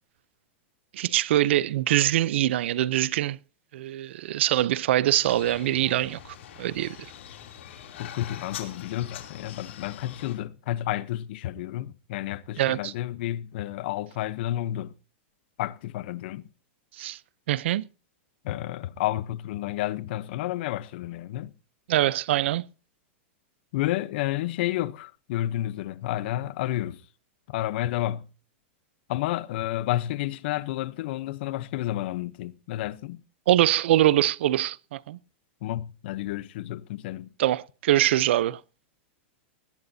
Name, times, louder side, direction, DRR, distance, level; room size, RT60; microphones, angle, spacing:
voice 1, 0.9-3.4 3.7-6.2 6.6-7.0 12.6-12.9 17.0-17.2 17.5-17.9 21.9-22.6 33.5-35.2 37.4-38.6, right 13 dB, 75° right, 0.6 m, -23 dB
sound 1, 5.2-10.3, left 10 dB, 80° left, 3.1 m, -43 dB
voice 2, 8.0-14.9 15.6-16.4 18.4-21.5 23.7-27.0 27.5-28.3 29.1-33.2 35.6-37.3, left 14 dB, 60° left, 0.8 m, -31 dB
19.0 x 17.0 x 2.8 m
supercardioid pair, 150°, 6 cm